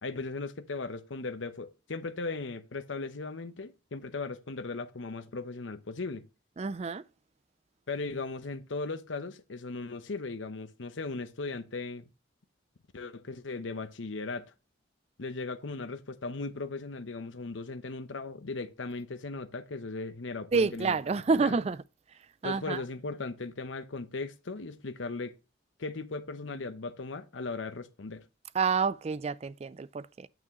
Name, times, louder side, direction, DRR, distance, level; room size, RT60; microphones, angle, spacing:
voice 1, 0.0-6.3 7.9-12.1 12.9-14.5 15.2-21.0 21.4-21.6 22.4-25.4 25.8-28.2, left 3 dB, 90° left, 0.9 m, -37 dB
voice 2, 6.6-7.0 20.5-21.8 22.4-22.8 28.5-30.3, right 4 dB, 35° right, 0.4 m, -28 dB
9.0 x 6.0 x 3.0 m
head